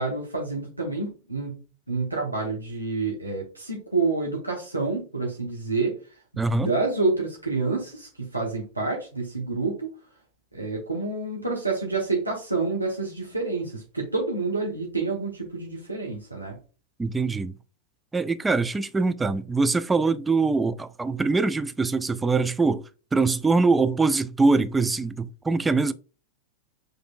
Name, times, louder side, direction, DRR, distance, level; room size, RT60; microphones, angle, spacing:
voice 1, 0.0-6.0 6.3-9.9 10.5-16.6, right 3 dB, 85° right, 1.1 m, -28 dB
voice 2, 6.4-6.7 17.0-17.5 18.1-25.9, right 3 dB, 10° right, 0.4 m, -23 dB
6.8 x 3.2 x 2.4 m
figure-of-eight pair, 90°, 0 cm